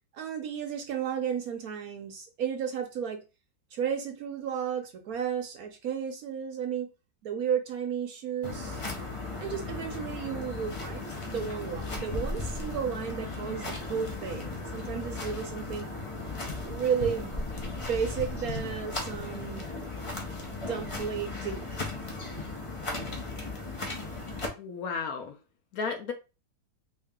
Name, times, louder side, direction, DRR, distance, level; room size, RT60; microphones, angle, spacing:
voice 1, 0.1-3.2 3.7-6.9 7.2-8.8 9.4-15.9 16.6-17.4 17.9-19.7 20.6-21.8, right 7 dB, 65° right, 1.1 m, -33 dB
sound 1, 8.4-24.5, left 3 dB, 45° left, 0.4 m, -36 dB
voice 2, 24.6-25.4 25.7-26.1, left 5 dB, 70° left, 1.0 m, -33 dB
3.2 x 2.8 x 3.5 m
omnidirectional pair, 1.8 m